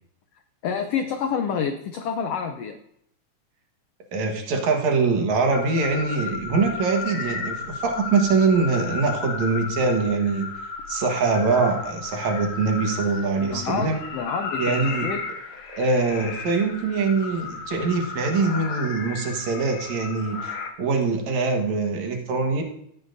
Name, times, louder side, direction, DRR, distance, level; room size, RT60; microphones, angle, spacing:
voice 1, 0.6-2.8 13.4-15.2, left 7 dB, 85° left, 6 dB, 1.4 m, -28 dB
voice 2, 4.1-10.5 10.9-14.0 14.6-15.1 15.7-22.6, right 4 dB, 65° right, 3 dB, 2.7 m, -23 dB
sound 1, 5.5-20.7, left 4 dB, 60° left, 1.5 m, -34 dB
16.0 x 8.5 x 2.7 m, 0.73 s
omnidirectional pair, 3.6 m